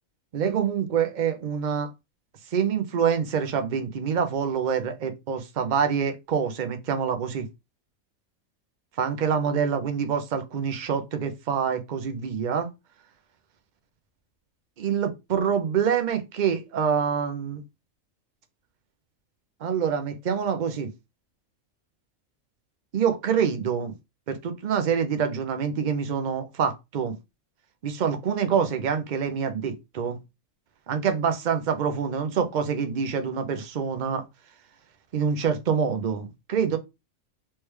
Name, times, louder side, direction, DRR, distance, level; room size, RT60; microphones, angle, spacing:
voice 1, 0.3-1.9 2.5-7.5 9.0-12.7 14.8-17.6 19.6-20.9 22.9-23.9 24.3-27.2 27.8-30.2 30.9-34.2 35.1-36.8, right 7 dB, 60° right, 0.5 m, -26 dB
3.3 x 3.2 x 3.2 m
omnidirectional pair, 1.5 m